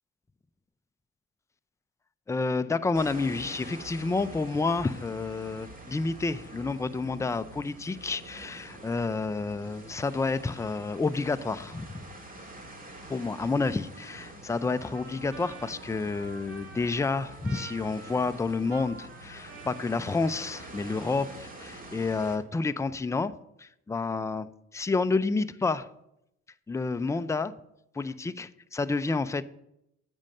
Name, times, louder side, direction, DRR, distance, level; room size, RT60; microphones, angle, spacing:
voice 1, 2.3-12.0 13.1-25.9 26.7-27.6 27.9-29.4, left 3 dB, 10° left, 12 dB, 0.4 m, -29 dB
sound 1, 2.9-22.4, right 1 dB, 30° right, 2.0 m, -46 dB
Trumpet, 14.5-21.1, right 3 dB, 45° right, 2.3 m, -49 dB
8.8 x 5.3 x 6.5 m, 0.80 s
cardioid pair, 90°, 30 cm